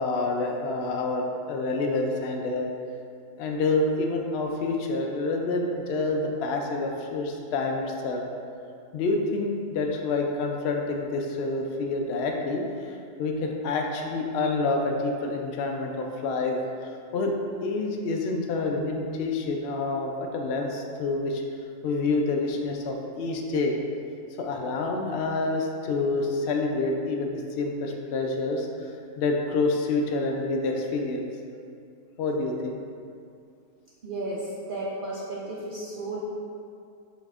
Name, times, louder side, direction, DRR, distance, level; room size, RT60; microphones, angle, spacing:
voice 1, 0.0-2.7 3.4-8.2 8.9-17.3 17.6-21.4 21.8-23.7 24.4-31.2 32.2-32.8, left 3 dB, 70° left, 1 dB, 0.6 m, -28 dB
voice 2, 34.0-36.2, right 2 dB, 85° right, -6 dB, 0.4 m, -33 dB
5.3 x 4.2 x 2.4 m, 2.5 s
omnidirectional pair, 1.6 m